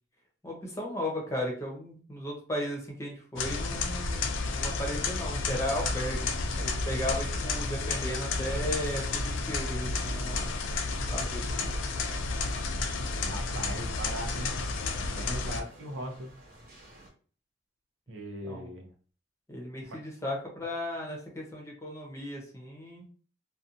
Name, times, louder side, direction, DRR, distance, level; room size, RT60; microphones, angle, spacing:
voice 1, 0.4-10.5 11.1-11.7 18.4-18.7 19.5-23.1, equal, 15° left, -2 dB, 0.7 m, -36 dB
sound 1, 3.4-15.6, left 3 dB, 80° left, 0.4 m, -31 dB
sound 2, 7.2-17.1, right 1 dB, 50° right, 0.9 m, -54 dB
voice 2, 13.2-14.5 15.0-16.3 18.1-18.9 19.9-20.0, equal, 90° right, 1 dB, 0.7 m, -39 dB
2.6 x 2.3 x 2.6 m, 0.42 s
head